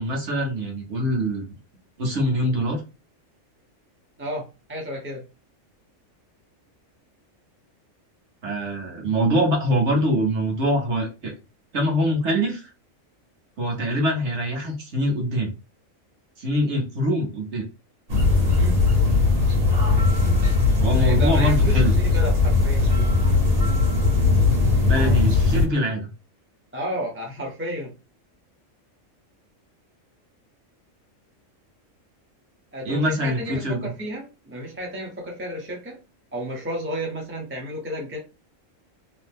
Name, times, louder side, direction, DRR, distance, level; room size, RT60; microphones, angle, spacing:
voice 1, 0.0-1.5 2.0-2.8 8.4-11.3 11.7-12.7 13.6-15.5 16.4-17.7 20.8-21.9 24.9-26.1 32.8-33.9, equal, 60° right, 0 dB, 1.2 m, -24 dB
voice 2, 4.2-5.2 18.5-18.8 20.9-23.1 26.7-27.9 32.7-36.0 36.3-38.2, equal, 15° right, -1 dB, 0.4 m, -32 dB
sound 1, 18.1-25.7, left 3 dB, 85° right, 1.5 m, -19 dB
2.8 x 2.1 x 3.3 m, 0.30 s
omnidirectional pair, 1.4 m